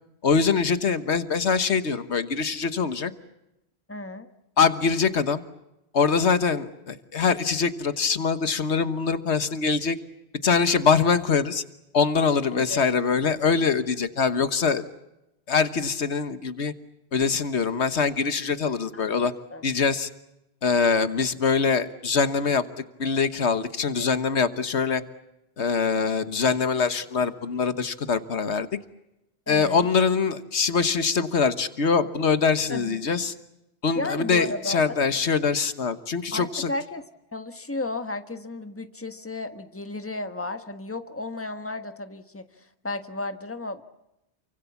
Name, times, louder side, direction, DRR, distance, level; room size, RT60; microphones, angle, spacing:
voice 1, 0.2-3.1 4.6-5.4 5.9-10.0 10.4-11.6 11.9-14.8 15.5-16.7 17.1-19.3 19.6-20.1 20.6-22.6 23.0-25.0 25.6-28.7 29.5-33.3 33.8-36.7, left 5 dB, 80° left, 11 dB, 1.6 m, -23 dB
voice 2, 3.9-4.3 12.5-12.8 18.9-19.0 19.5-19.6 24.0-24.1 29.5-29.8 32.7-33.0 34.0-35.0 36.3-37.0 37.3-43.8, left 2 dB, 10° left, 8 dB, 1.5 m, -33 dB
28.5 x 24.5 x 7.2 m, 0.91 s
omnidirectional pair, 1.1 m